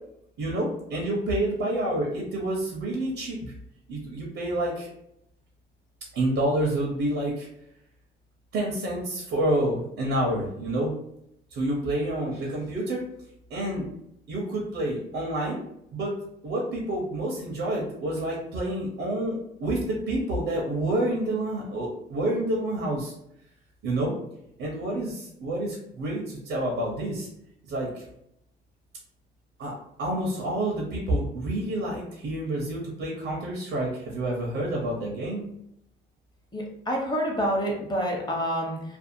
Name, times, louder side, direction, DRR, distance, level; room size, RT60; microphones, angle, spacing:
voice 1, 0.4-3.5 3.9-4.9 6.1-7.5 8.5-10.9 11.5-13.0 13.5-13.9 14.3-15.6 15.9-16.1 16.4-23.1 23.8-24.1 24.6-27.3 27.6-28.0 29.6-35.4, right 1 dB, 80° right, -2 dB, 0.8 m, -28 dB
voice 2, 36.5-39.0, equal, 20° left, -1 dB, 0.9 m, -28 dB
2.6 x 2.3 x 2.6 m, 0.77 s
cardioid pair, 90°, 20 cm